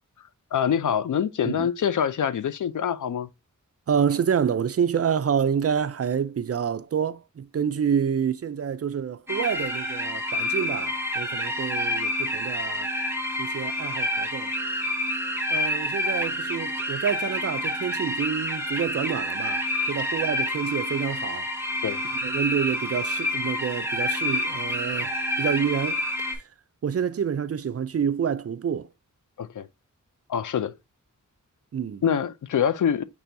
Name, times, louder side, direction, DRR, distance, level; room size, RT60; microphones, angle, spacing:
voice 1, 0.5-3.3 21.8-22.0 29.4-29.7 30.3-30.7 32.0-33.0, left 8 dB, 70° left, 0.5 m, -25 dB
voice 2, 3.9-12.9 13.4-14.5 15.5-21.5 22.2-26.0 26.4-26.5 26.8-28.9 31.7-32.0, right 7 dB, 50° right, 0.4 m, -28 dB
sound 1, 9.3-26.3, left 1 dB, 5° right, 1.0 m, -28 dB
6.1 x 3.3 x 2.6 m
wide cardioid pair, 105°, 32 cm